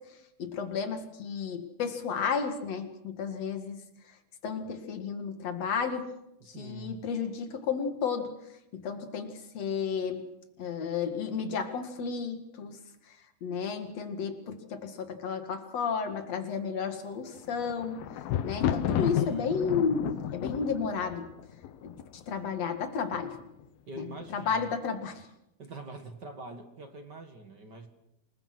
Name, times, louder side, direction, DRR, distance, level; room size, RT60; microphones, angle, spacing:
voice 1, 0.4-3.8 4.4-6.1 6.5-8.3 8.7-10.3 10.6-12.8 13.1-13.2 13.4-18.0 18.4-21.3 21.8-22.0 22.3-23.4 24.0-25.3, left 6 dB, 50° left, 7 dB, 2.8 m, -32 dB
voice 2, 6.4-7.0 18.9-19.5 23.9-24.7 25.6-27.9, right 2 dB, 40° right, 6 dB, 1.6 m, -44 dB
Thunder, 17.3-22.4 23.1-23.6 23.9-24.0, left 10 dB, 75° left, 2.8 m, -32 dB
28.0 x 20.5 x 6.1 m, 0.84 s
omnidirectional pair, 4.4 m